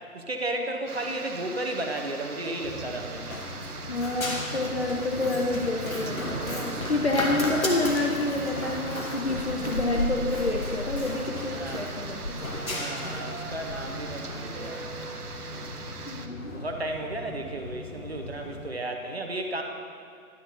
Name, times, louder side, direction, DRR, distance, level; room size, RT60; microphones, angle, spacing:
voice 1, 0.1-3.4 11.6-11.8 12.7-14.8 16.5-19.6, right 1 dB, 45° right, 3 dB, 0.8 m, -33 dB
sound 1, 0.9-16.3, right 4 dB, 85° right, 0.8 m, -40 dB
Run, 2.6-18.7, left 1 dB, 65° left, 1.4 m, -35 dB
voice 2, 3.9-12.4 16.1-16.7, left 2 dB, 45° left, 0 dB, 0.6 m, -28 dB
Piano, 12.4-17.3, right 3 dB, 70° right, 1.3 m, -46 dB
11.0 x 6.1 x 4.0 m, 2.4 s
figure-of-eight pair, 160°, 44 cm